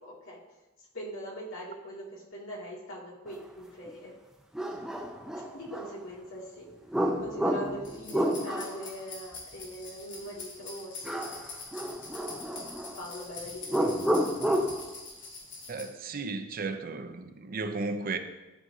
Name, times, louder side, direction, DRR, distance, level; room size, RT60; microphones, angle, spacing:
voice 1, 0.0-0.4 0.9-4.1 5.5-6.7 7.0-11.2 13.0-14.2, equal, 80° left, 2.1 m, -41 dB
sound 1, 3.9-4.0 4.5-5.9 6.9-8.9 11.0-11.5 11.7-12.9 13.6-14.8, equal, 5° right, 0.6 m, -30 dB
sound 2, 7.8-15.8, left 3 dB, 60° left, 2.3 m, -44 dB
voice 2, 15.7-18.2, right 3 dB, 45° right, 0.6 m, -34 dB
12.5 x 6.0 x 2.7 m
head